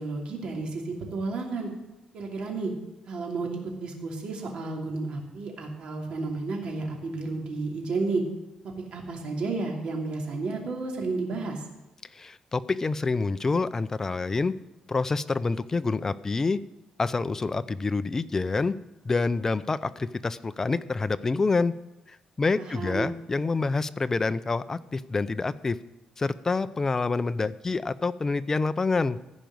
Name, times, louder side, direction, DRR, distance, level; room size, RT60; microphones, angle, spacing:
voice 1, 0.0-1.7 2.1-2.7 3.1-8.2 8.9-11.6 22.6-23.1, right 3 dB, 55° right, 0 dB, 2.8 m, -32 dB
voice 2, 12.1-14.5 14.9-16.6 17.0-18.7 19.0-21.7 22.1-25.8 26.2-29.2, left 3 dB, 20° left, 13 dB, 0.5 m, -27 dB
15.0 x 5.2 x 9.4 m, 1.0 s
cardioid pair, 135°, 2 cm